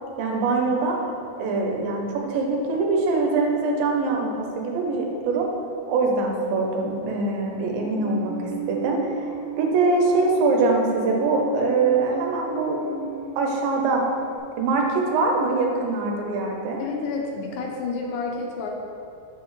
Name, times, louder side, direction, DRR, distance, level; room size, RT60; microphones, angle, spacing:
voice 1, 0.2-1.0 1.4-5.5 5.9-8.3 8.7-12.8 13.4-14.0 14.5-16.8, right 3 dB, 75° right, 1 dB, 2.4 m, -23 dB
Musical instrument, 7.5-14.4, right 5 dB, 40° right, 1.3 m, -36 dB
voice 2, 16.8-18.7, left 4 dB, 75° left, 0 dB, 2.3 m, -29 dB
8.5 x 5.9 x 3.1 m, 2.5 s
omnidirectional pair, 4.4 m